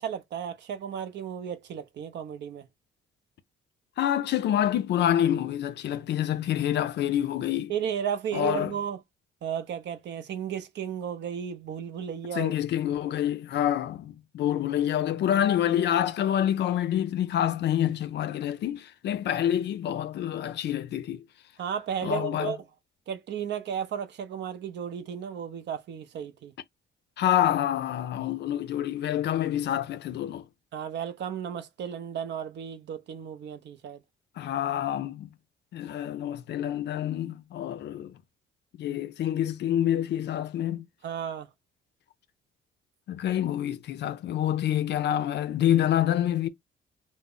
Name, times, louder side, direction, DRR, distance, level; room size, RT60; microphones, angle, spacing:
voice 1, 0.0-2.7 7.7-9.0 9.4-12.5 21.6-22.6 23.1-26.5 30.7-34.0 41.0-41.5, right 8 dB, 60° right, 0.5 m, -34 dB
voice 2, 4.0-7.7 8.3-8.7 12.3-21.2 22.0-22.5 27.2-30.5 34.4-35.3 35.7-38.2 38.8-40.9 43.1-46.5, left 11 dB, 60° left, 0.4 m, -27 dB
2.0 x 2.0 x 3.6 m
cardioid pair, 90°, 20 cm